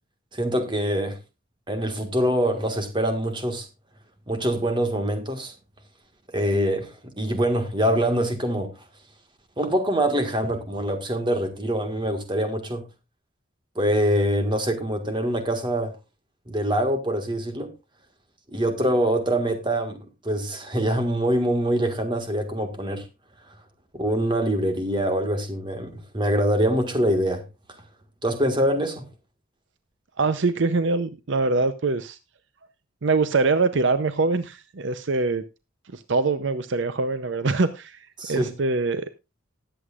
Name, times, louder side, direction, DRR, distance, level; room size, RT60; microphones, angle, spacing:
voice 1, 0.3-1.2 1.7-3.7 4.3-5.5 6.3-8.7 9.6-12.9 13.7-15.9 16.5-17.7 18.5-20.0 20.2-23.0 23.9-27.4 28.2-29.1 38.2-38.5, equal, 25° right, 1.6 m, -24 dB
voice 2, 30.2-32.2 33.0-35.4 35.9-39.1, right 3 dB, 60° right, 0.6 m, -23 dB
19.0 x 8.0 x 2.4 m
head